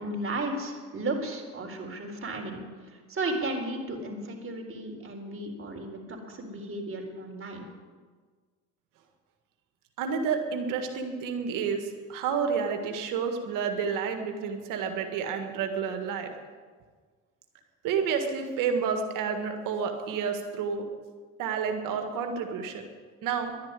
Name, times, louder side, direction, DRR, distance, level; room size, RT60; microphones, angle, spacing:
voice 1, 0.0-7.7, right 2 dB, 40° right, 2 dB, 4.0 m, -34 dB
voice 2, 10.0-16.3 17.8-20.9 21.4-22.8 23.2-23.5, right 6 dB, 80° right, 5 dB, 1.7 m, -30 dB
11.5 x 10.5 x 9.7 m, 1.5 s
supercardioid pair, 65°, 32 cm